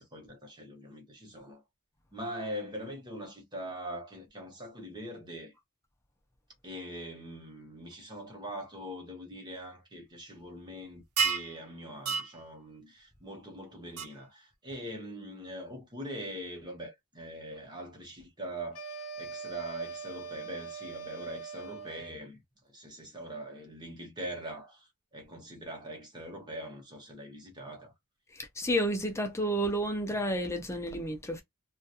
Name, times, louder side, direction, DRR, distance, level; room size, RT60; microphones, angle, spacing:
voice 1, 0.0-1.6 2.1-5.5 6.6-22.4 22.7-27.9, equal, 20° right, 0.9 m, -42 dB
sound 1, 11.2-11.5 12.1-12.3 14.0-14.1, right 6 dB, 80° right, 0.6 m, -28 dB
sound 2, 18.7-22.2, right 5 dB, 70° left, 0.7 m, -42 dB
voice 2, 28.3-31.4, equal, 10° left, 0.4 m, -31 dB
2.4 x 2.3 x 2.7 m
head